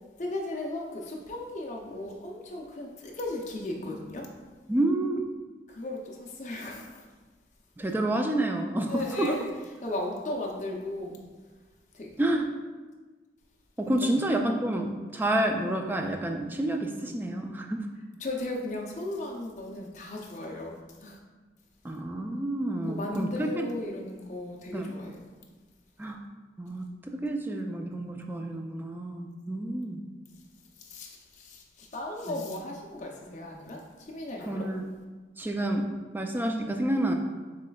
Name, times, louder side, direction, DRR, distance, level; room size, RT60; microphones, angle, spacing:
voice 1, 0.2-4.3 5.7-7.1 8.9-9.4 9.8-11.2 11.9-12.1 14.0-14.1 18.2-21.2 22.8-25.2 30.8-34.7, left 2 dB, 40° left, -1 dB, 0.5 m, -36 dB
voice 2, 4.7-5.2 7.8-9.3 12.2-12.5 13.8-17.8 21.8-23.7 24.7-24.9 26.0-26.2 26.6-30.0 32.3-32.4 34.5-34.9 35.4-35.9 36.1-37.1, right 1 dB, 10° right, 3 dB, 0.3 m, -29 dB
7.3 x 3.2 x 2.3 m, 1.3 s
head